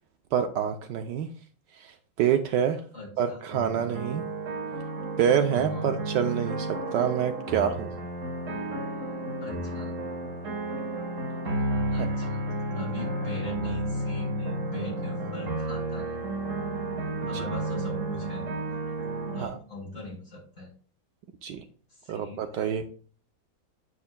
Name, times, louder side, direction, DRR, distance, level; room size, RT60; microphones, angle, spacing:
voice 1, 0.3-1.3 1.7-2.8 3.2-4.2 5.2-7.9 17.3-17.5 19.4-19.6 21.4-21.6 22.1-22.9, right 8 dB, 70° right, 7 dB, 1.2 m, -27 dB
voice 2, 2.9-3.4 5.7-6.0 9.4-9.9 11.9-12.4 12.7-16.2 17.3-18.5 19.3-20.7 21.9-22.8, left 2 dB, 40° left, -3 dB, 5.0 m, -41 dB
sound 1, 3.5-19.4, right 2 dB, 45° right, 1.5 m, -32 dB
9.6 x 7.6 x 2.2 m, 0.42 s
omnidirectional pair, 2.1 m